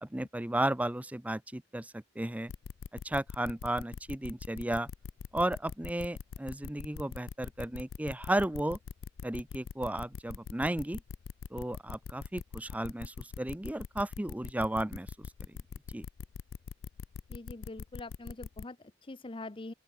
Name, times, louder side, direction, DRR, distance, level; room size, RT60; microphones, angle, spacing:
voice 1, 0.0-2.5 3.0-4.9 5.3-8.8 9.2-11.0 11.5-15.1 15.9-16.0, right 1 dB, 5° right, 0.5 m, -34 dB
sound 1, 2.5-18.6, left 6 dB, 85° left, 0.4 m, -42 dB
voice 2, 17.3-19.7, left 2 dB, 25° left, 0.7 m, -44 dB
open air
head